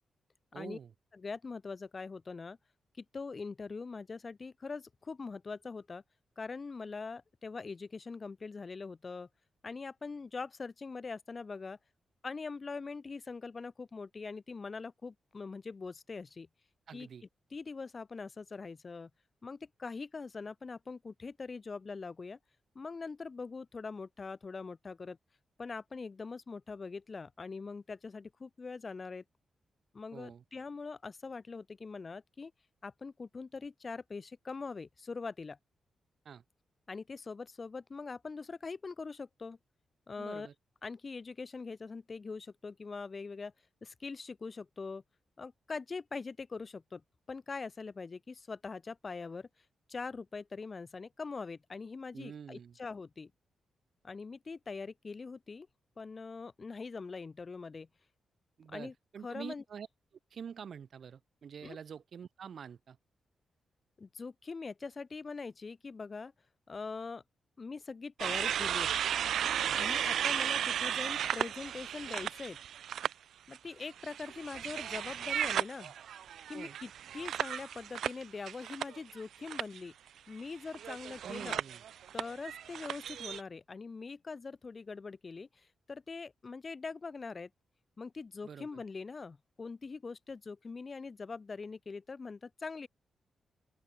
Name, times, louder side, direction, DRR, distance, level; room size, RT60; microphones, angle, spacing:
voice 1, 0.5-0.9 16.9-17.2 30.1-30.4 36.2-36.4 40.2-40.5 52.1-52.8 58.6-59.9 60.3-63.0 69.7-69.9 76.5-76.8 81.2-81.8 88.4-88.8, right 7 dB, 50° right, 4.9 m, -47 dB
voice 2, 1.1-2.6 3.0-6.0 6.4-9.3 9.6-11.8 12.2-16.5 16.9-17.1 17.5-19.1 19.4-22.4 22.7-25.2 25.6-29.2 29.9-32.5 32.8-35.6 36.9-39.6 40.1-40.5 40.8-43.5 43.8-45.0 45.4-47.0 47.3-49.5 49.9-53.3 54.0-55.7 56.0-57.9 58.7-58.9 59.2-59.6 61.6-61.8 64.0-66.3 66.7-67.2 67.6-68.9 69.7-72.6 73.5-75.9 76.5-79.9 80.3-81.6 82.1-87.5 88.0-92.9, left 4 dB, 30° left, 2.7 m, -42 dB
sound 1, 68.2-73.1 73.5-79.2 79.5-79.8 80.7-83.4, right 9 dB, 80° right, 3.7 m, -35 dB
open air
wide cardioid pair, 165°, 0 cm